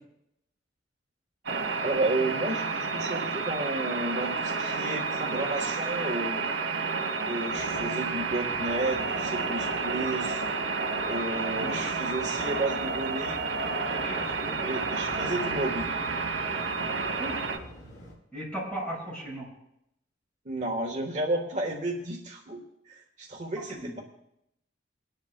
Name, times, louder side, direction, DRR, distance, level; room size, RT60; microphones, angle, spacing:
sound 1, 1.5-17.6, right 4 dB, 80° right, 2.3 m, -30 dB
voice 1, 1.8-6.4 7.2-10.4 11.0-13.4 14.6-15.9 20.4-24.0, right 2 dB, 40° right, 0 dB, 1.3 m, -32 dB
Waves surf, 7.5-18.1, equal, 60° left, 6.2 m, -48 dB
voice 2, 13.9-14.6 17.2-17.6 18.3-19.5 23.8-23.9, right 1 dB, 5° left, -5 dB, 6.1 m, -37 dB
29.0 x 10.5 x 2.2 m, 0.80 s
head